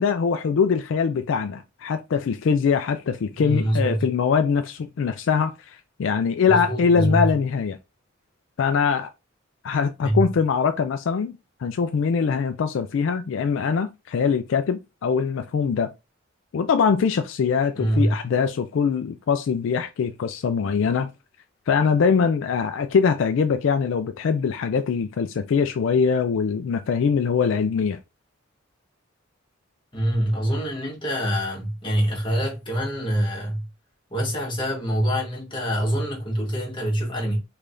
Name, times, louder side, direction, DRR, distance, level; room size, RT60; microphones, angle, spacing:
voice 1, 0.0-7.8 8.6-9.1 9.6-15.9 16.5-21.1 21.7-28.0, left 6 dB, 65° left, 0.3 m, -22 dB
voice 2, 3.3-4.0 6.4-7.3 10.0-10.2 17.7-18.1 29.9-33.7 34.1-37.4, equal, 25° left, 1.3 m, -25 dB
3.4 x 3.3 x 2.5 m
head